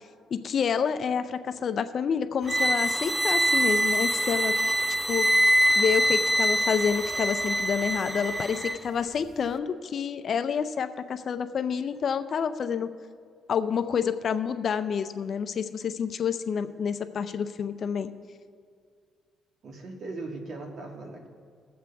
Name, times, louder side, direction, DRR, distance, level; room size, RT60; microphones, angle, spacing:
voice 1, 0.3-4.5 5.1-5.3 5.8-12.9 13.5-18.1, left 7 dB, 55° left, 10 dB, 0.5 m, -28 dB
sound 1, 2.4-8.8, right 1 dB, 15° right, 0.6 m, -24 dB
voice 2, 19.6-21.3, right 2 dB, 60° right, 2 dB, 1.8 m, -39 dB
20.5 x 7.4 x 3.5 m, 2.1 s
cardioid pair, 90°, 0 cm